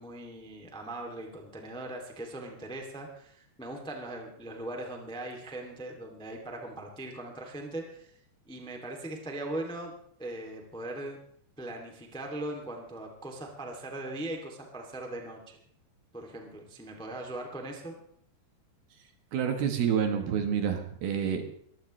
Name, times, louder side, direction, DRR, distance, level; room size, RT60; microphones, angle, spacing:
voice 1, 0.0-8.1 8.4-9.9 10.2-11.2 11.6-15.6 16.1-17.9, right 1 dB, ahead, 2 dB, 1.3 m, -40 dB
voice 2, 19.3-21.4, right 8 dB, 65° right, 5 dB, 3.1 m, -28 dB
22.5 x 15.5 x 3.3 m, 0.65 s
omnidirectional pair, 5.2 m